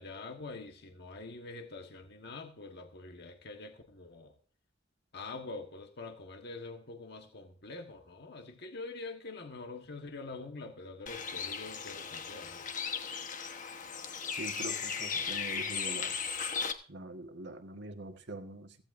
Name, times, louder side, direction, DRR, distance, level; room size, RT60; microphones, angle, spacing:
voice 1, 0.0-4.3 5.1-12.7, left 3 dB, 60° left, 1.5 m, -45 dB
Bird, 11.1-16.7, left 6 dB, 45° left, 1.2 m, -36 dB
voice 2, 14.3-16.2 16.9-18.8, right 2 dB, 65° right, 1.6 m, -43 dB
16.5 x 15.5 x 2.6 m
head